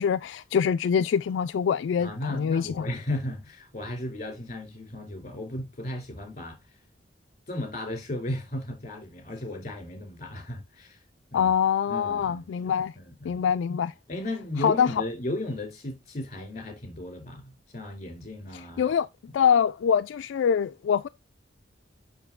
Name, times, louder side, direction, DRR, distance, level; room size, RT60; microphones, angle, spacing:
voice 1, 0.0-2.9 11.3-12.9 13.2-13.9 14.6-14.9 18.5-19.1 19.3-21.1, left 7 dB, 75° left, 0.3 m, -24 dB
voice 2, 2.0-6.6 7.5-11.0 11.3-11.5 11.9-12.4 13.0-13.4 14.1-18.9 19.3-19.4, left 1 dB, 40° left, 2.5 m, -35 dB
6.9 x 5.9 x 2.3 m
head